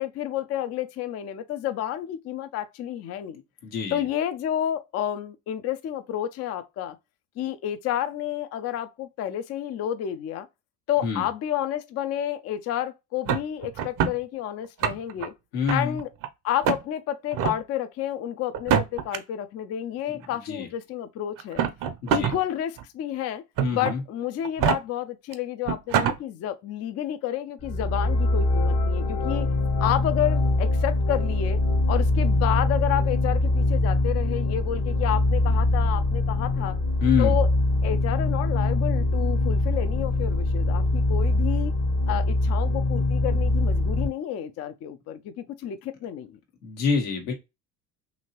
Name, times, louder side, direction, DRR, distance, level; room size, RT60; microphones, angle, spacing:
voice 1, 0.0-3.4 3.9-7.0 7.4-10.5 10.9-15.3 15.7-16.1 16.4-21.6 22.1-23.4 23.7-29.5 29.8-31.6 31.9-36.8 37.2-37.5 37.8-41.7 42.1-46.4, left 11 dB, 35° left, 0.4 m, -30 dB
voice 2, 3.6-4.0 11.0-11.3 15.5-16.0 20.1-20.7 22.0-22.3 23.6-24.0 37.0-37.3 46.6-47.3, left 5 dB, 80° left, 1.3 m, -26 dB
sound 1, 13.3-14.2 14.6-15.3 15.7-16.3 16.6-16.8 17.3-17.6 18.5-19.2 20.2-20.3 21.4-22.4 22.8-22.9 23.6-23.9 24.4-24.8 25.3-25.4 25.7-26.2, right 8 dB, 45° right, 0.6 m, -24 dB
sound 2, 27.6-44.1, left 2 dB, 55° left, 1.2 m, -23 dB
2.9 x 2.7 x 2.9 m
hypercardioid pair, 70°, 48 cm